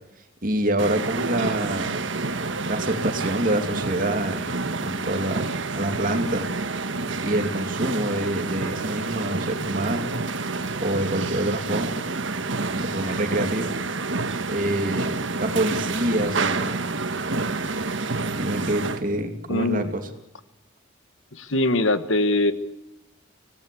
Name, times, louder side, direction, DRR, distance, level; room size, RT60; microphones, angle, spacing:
voice 1, 0.4-2.0 2.6-5.5 5.7-6.5 7.2-10.1 10.8-11.9 12.7-13.7 14.5-16.8 18.3-20.1, right 1 dB, 40° right, 6 dB, 2.6 m, -26 dB
sound 1, 0.8-19.0, right 3 dB, 70° right, 1.4 m, -28 dB
voice 2, 19.5-19.9 21.3-22.5, left 2 dB, 75° left, 12 dB, 1.4 m, -22 dB
25.0 x 18.5 x 8.5 m, 0.91 s
head